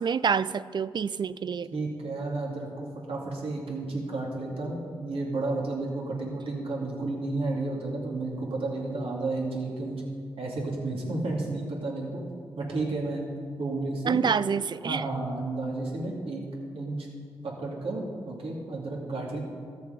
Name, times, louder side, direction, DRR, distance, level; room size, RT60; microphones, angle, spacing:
voice 1, 0.0-1.7 14.0-15.0, right 6 dB, 50° right, 16 dB, 0.4 m, -27 dB
voice 2, 1.7-10.0 10.4-12.2 12.6-13.2 13.6-14.4 14.8-16.4 16.7-17.1 17.4-19.4, right 2 dB, 75° right, -2 dB, 2.4 m, -32 dB
14.0 x 6.8 x 5.1 m, 2.1 s
supercardioid pair, 45°, 10 cm